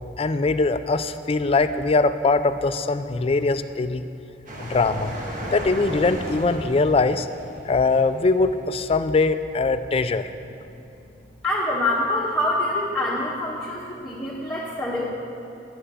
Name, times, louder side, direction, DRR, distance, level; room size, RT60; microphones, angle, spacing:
voice 1, 0.2-4.0 4.6-5.1 5.5-7.3 7.6-10.3, left 3 dB, 35° left, 11 dB, 0.4 m, -22 dB
sound 1, 4.5-8.9, equal, 50° right, 1.5 m, -35 dB
voice 2, 11.4-15.1, left 1 dB, 10° left, -8 dB, 1.3 m, -25 dB
11.0 x 5.7 x 8.3 m, 2.9 s
head